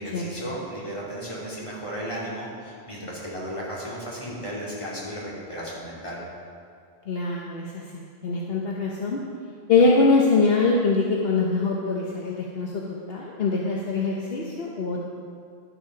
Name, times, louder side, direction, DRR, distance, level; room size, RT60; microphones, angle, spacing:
voice 1, 0.0-6.2, equal, 30° left, -6 dB, 2.8 m, -34 dB
voice 2, 7.1-9.2 9.7-15.0, left 3 dB, 65° left, -2 dB, 1.1 m, -23 dB
11.0 x 7.7 x 5.7 m, 2.3 s
omnidirectional pair, 1.1 m